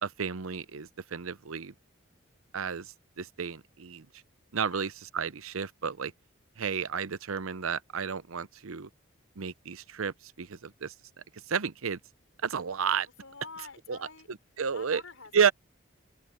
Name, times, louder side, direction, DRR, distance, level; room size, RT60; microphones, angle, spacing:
voice 1, 0.0-1.7 2.5-4.1 4.5-6.1 6.6-8.9 9.4-10.9 11.5-12.0 12.4-13.1 13.9-14.0 14.3-15.0 15.3-15.5, right 6 dB, 85° right, 0.7 m, -31 dB
voice 2, 13.2-14.3 14.7-15.5, left 4 dB, 80° left, 5.0 m, -47 dB
open air
head